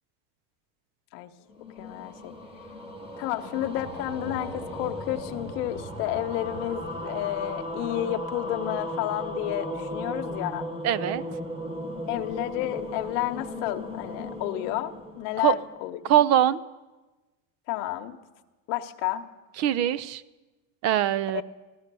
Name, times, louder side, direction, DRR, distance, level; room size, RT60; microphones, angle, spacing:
sound 1, 1.5-15.9, equal, 10° right, 1.3 m, -36 dB
voice 1, 1.8-2.3 3.2-10.7 12.1-16.2 17.7-18.2 18.7-19.2 21.3-21.4, left 14 dB, 75° left, 7 dB, 1.1 m, -31 dB
voice 2, 10.8-11.2 15.4-15.6 16.1-16.6 19.6-20.2 20.8-21.4, right 11 dB, 35° right, 19 dB, 0.4 m, -22 dB
15.0 x 12.5 x 6.8 m, 1.2 s
cardioid pair, 145°, 48 cm